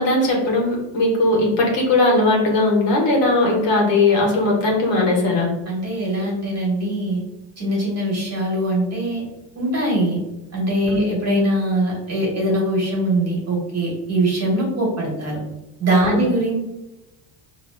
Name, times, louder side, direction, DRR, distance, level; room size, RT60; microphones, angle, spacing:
voice 1, 0.0-5.5 10.9-11.0 16.0-16.3, left 2 dB, 65° left, -2 dB, 1.3 m, -18 dB
voice 2, 5.7-7.2 7.6-9.2 9.5-10.2 10.5-15.4 15.8-16.6, right 1 dB, 35° right, -3 dB, 1.3 m, -22 dB
3.9 x 2.8 x 2.2 m, 0.96 s
cardioid pair, 135°, 47 cm